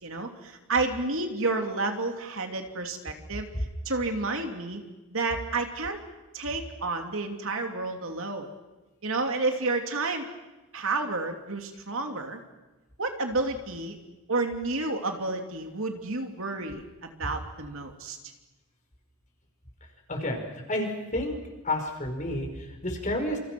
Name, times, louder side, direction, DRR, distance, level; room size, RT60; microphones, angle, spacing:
voice 1, 0.0-3.5 3.8-4.8 5.1-6.0 6.3-8.5 9.0-10.3 10.7-12.4 13.0-14.0 14.3-18.2, right 3 dB, 60° right, 4 dB, 3.1 m, -30 dB
voice 2, 20.1-20.4 20.7-21.3 21.6-23.4, left 1 dB, 35° left, 3 dB, 5.3 m, -30 dB
28.5 x 28.5 x 6.2 m, 1.1 s
head